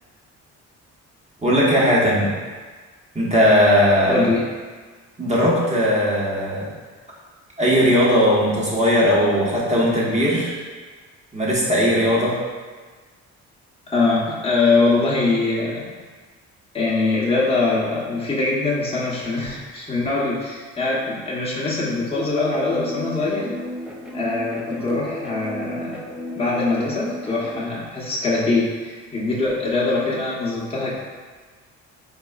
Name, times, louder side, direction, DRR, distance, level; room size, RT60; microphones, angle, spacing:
voice 1, 1.4-2.3 3.1-4.2 5.2-6.7 7.6-10.5 11.3-12.4, equal, 20° right, -6 dB, 1.2 m, -18 dB
voice 2, 4.1-4.4 13.9-15.8 16.7-23.5 24.1-26.0 26.3-30.9, left 3 dB, 20° left, -6 dB, 1.0 m, -22 dB
sound 1, 22.1-27.6, equal, 5° right, 0.5 m, -34 dB
4.1 x 4.0 x 2.4 m, 1.4 s
cardioid pair, 90°, 30 cm